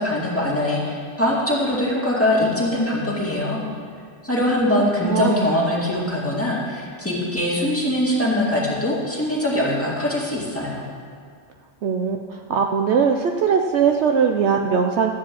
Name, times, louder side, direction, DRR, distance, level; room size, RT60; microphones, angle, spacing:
voice 1, 0.0-3.6 4.2-10.8, left 1 dB, 10° left, -6 dB, 2.2 m, -22 dB
voice 2, 5.0-5.5 11.8-15.1, right 6 dB, 65° right, 3 dB, 0.8 m, -20 dB
13.0 x 5.1 x 8.5 m, 2.2 s
omnidirectional pair, 1.3 m